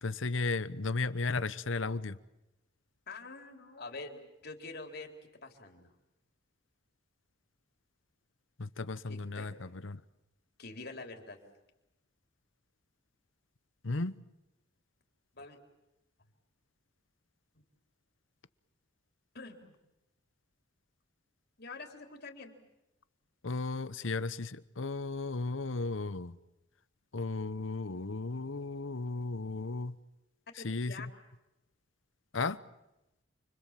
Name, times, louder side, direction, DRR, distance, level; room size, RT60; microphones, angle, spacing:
voice 1, 0.0-2.2 8.6-10.0 13.8-14.1 23.4-26.4 27.1-29.9 30.6-31.1 32.3-32.6, left 3 dB, 80° left, 1.0 m, -35 dB
voice 2, 3.1-5.1 5.4-5.9 9.1-9.6 10.6-11.4 15.4-15.6 19.3-19.7 21.6-22.5 24.0-24.1 30.6-31.1, left 3 dB, 55° left, 4.0 m, -46 dB
29.5 x 25.0 x 7.6 m
head